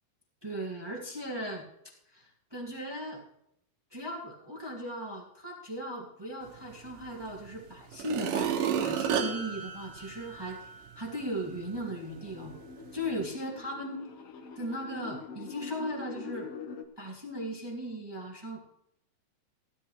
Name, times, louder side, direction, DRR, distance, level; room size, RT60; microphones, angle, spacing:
voice 1, 0.4-1.6 2.1-3.2 3.9-10.7 10.9-12.5 12.9-14.0 14.6-16.5 17.0-18.6, equal, 15° right, -1 dB, 0.9 m, -37 dB
sound 1, 7.2-7.3 7.9-10.8 11.3-11.4, right 8 dB, 65° right, 2.4 m, -32 dB
sound 2, 11.7-16.8, left 5 dB, 80° left, 1.3 m, -44 dB
16.0 x 12.5 x 3.3 m, 0.78 s
omnidirectional pair, 4.5 m